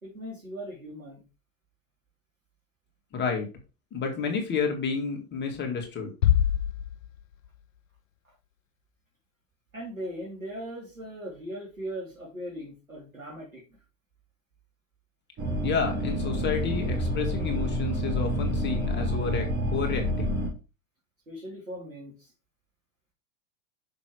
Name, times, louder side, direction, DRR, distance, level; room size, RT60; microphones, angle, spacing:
voice 1, 0.0-1.3 9.7-13.6 21.3-22.3, equal, 85° right, -5 dB, 3.5 m, -39 dB
voice 2, 3.1-3.5 3.9-6.1 15.6-20.4, left 5 dB, 25° left, 2 dB, 2.6 m, -30 dB
Bass drum, 6.2-7.6, left 10 dB, 75° left, 0.6 m, -25 dB
sound 1, 15.4-20.5, equal, 25° right, 3.7 m, -28 dB
6.8 x 6.4 x 4.8 m, 0.31 s
figure-of-eight pair, 90°, 40 cm